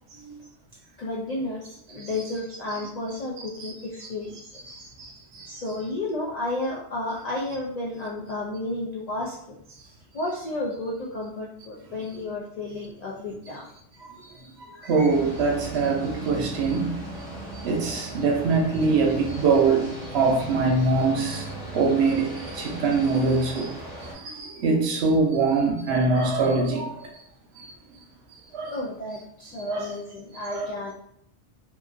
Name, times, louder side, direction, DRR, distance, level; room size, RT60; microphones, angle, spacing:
voice 1, 1.0-4.9 5.5-9.4 10.1-13.7 14.7-15.1 28.7-30.9, left 2 dB, 65° left, 0.4 m, -32 dB
voice 2, 14.9-16.9 17.6-19.9 20.1-21.4 21.7-22.3 22.5-23.7 24.2-26.9 28.5-28.7 29.7-29.9 30.5-30.7, right 4 dB, 65° right, 0.8 m, -23 dB
sound 1, 15.1-24.1, right 1 dB, 5° right, 0.7 m, -37 dB
2.8 x 2.3 x 2.4 m
omnidirectional pair, 1.2 m